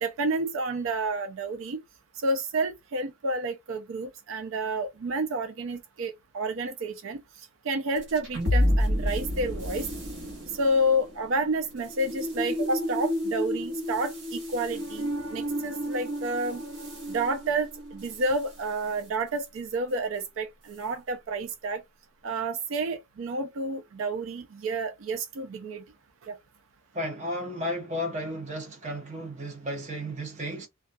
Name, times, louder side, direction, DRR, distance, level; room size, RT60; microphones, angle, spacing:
voice 1, 0.0-1.8 2.2-7.2 7.6-9.9 10.5-16.6 17.1-21.8 22.2-25.8 26.2-26.3, right 2 dB, 75° right, 0.4 m, -30 dB
sound 1, 8.0-18.5, left 1 dB, 60° right, 1.1 m, -30 dB
voice 2, 26.9-30.7, equal, 35° right, 0.8 m, -33 dB
2.3 x 2.2 x 2.6 m
head